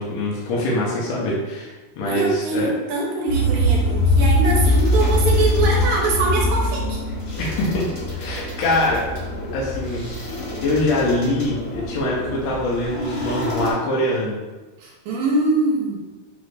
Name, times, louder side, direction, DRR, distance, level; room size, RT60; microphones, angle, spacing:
voice 1, 0.0-2.7 7.4-7.9 8.2-9.1 9.5-10.1 10.6-14.4, left 1 dB, 75° left, -5 dB, 1.7 m, -23 dB
voice 2, 2.1-7.0 14.8-16.0, right 3 dB, 80° right, -2 dB, 2.0 m, -23 dB
sound 1, 3.3-13.7, left 1 dB, 60° left, 2.4 m, -23 dB
4.9 x 2.4 x 3.2 m, 1.2 s
omnidirectional pair, 3.3 m